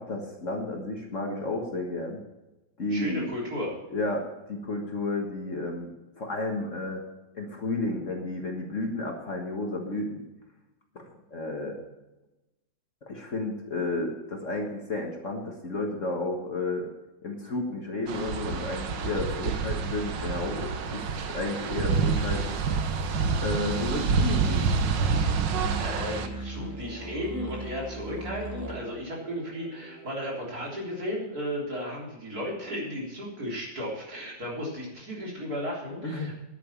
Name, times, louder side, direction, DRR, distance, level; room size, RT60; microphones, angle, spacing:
voice 1, 0.0-2.2 2.8-3.3 3.9-5.9 6.2-7.0 7.3-10.2 11.0-11.1 11.3-11.8 13.0-16.9 17.2-22.6 23.4-24.7 36.0-36.4, left 2 dB, 45° left, 1 dB, 1.8 m, -32 dB
voice 2, 2.9-3.7 25.4-36.4, equal, 50° right, -3 dB, 4.0 m, -34 dB
sound 1, 18.1-26.3, right 5 dB, 75° right, 1.7 m, -28 dB
sound 2, 23.6-28.9, right 3 dB, 10° right, 1.2 m, -38 dB
sound 3, 23.7-30.7, left 2 dB, 75° left, 3.0 m, -48 dB
10.5 x 9.0 x 7.2 m, 1.0 s
omnidirectional pair, 2.0 m